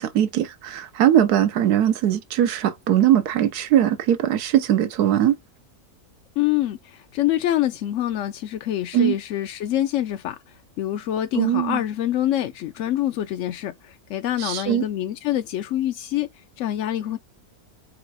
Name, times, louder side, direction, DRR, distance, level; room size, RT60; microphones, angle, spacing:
voice 1, 0.0-5.3 8.9-9.2 11.3-11.8 14.4-14.8, right 11 dB, 90° right, 1.3 m, -20 dB
voice 2, 6.4-17.2, left 12 dB, 70° left, 0.8 m, -26 dB
5.0 x 3.9 x 4.7 m
omnidirectional pair, 1.6 m